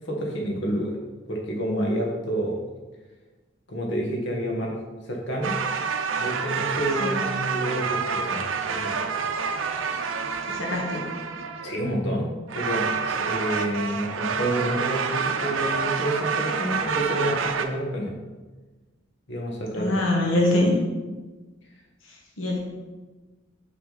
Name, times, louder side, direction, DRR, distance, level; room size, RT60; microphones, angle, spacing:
voice 1, 0.0-0.9 1.3-2.6 3.7-4.8 5.0-5.5 6.2-8.9 11.6-18.1 19.3-19.9 20.5-20.6, equal, 65° left, -1 dB, 1.3 m, -29 dB
sound 1, 5.4-11.9 12.5-17.7, right 5 dB, 80° right, 0.6 m, -28 dB
voice 2, 10.5-11.0 19.8-20.7 22.4-22.6, left 1 dB, 85° left, -1 dB, 1.2 m, -23 dB
6.0 x 6.0 x 3.9 m, 1.3 s
head